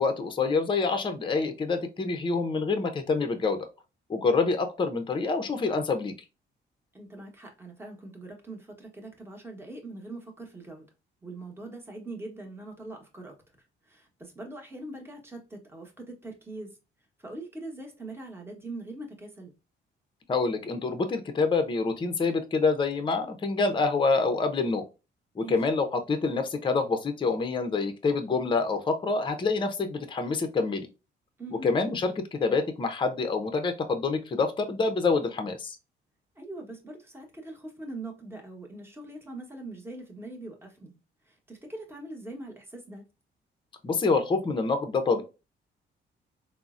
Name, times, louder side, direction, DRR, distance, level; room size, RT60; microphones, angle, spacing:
voice 1, 0.0-3.6 4.1-6.1 20.3-24.8 25.4-30.9 31.6-35.8 43.8-45.2, left 4 dB, 25° left, 0.5 m, -26 dB
voice 2, 6.9-10.8 11.2-13.4 13.9-16.8 17.2-19.5 25.4-25.6 31.4-31.7 36.4-41.0 41.3-43.1, right 2 dB, 10° right, 0.9 m, -42 dB
3.7 x 2.0 x 2.4 m
cardioid pair, 90°, 20 cm